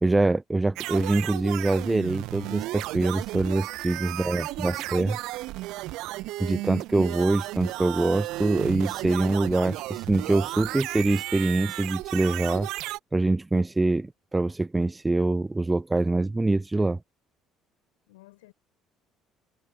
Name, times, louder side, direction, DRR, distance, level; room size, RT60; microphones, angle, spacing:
voice 1, 0.0-5.1 6.4-12.7 13.1-17.0, right 2 dB, 15° right, 1.2 m, -24 dB
sound 1, 0.8-13.0, right 18 dB, 60° right, 1.4 m, -34 dB
voice 2, 4.1-4.9 18.1-18.5, left 20 dB, 70° left, 6.4 m, -53 dB
figure-of-eight pair, 55°, 0 cm